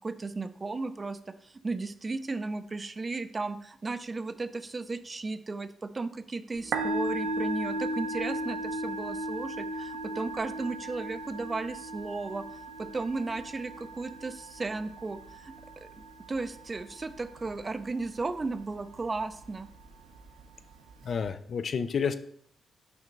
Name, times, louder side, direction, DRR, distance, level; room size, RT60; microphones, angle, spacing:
voice 1, 0.0-12.4 12.8-15.5 15.8-15.9 16.3-19.7, right 3 dB, 30° right, 11 dB, 0.4 m, -35 dB
Musical instrument, 6.5-21.3, right 1 dB, 80° right, 0.7 m, -37 dB
voice 2, 21.1-22.2, left 6 dB, 55° left, 10 dB, 0.4 m, -30 dB
5.9 x 4.4 x 3.8 m, 0.65 s
cardioid pair, 105°, 0 cm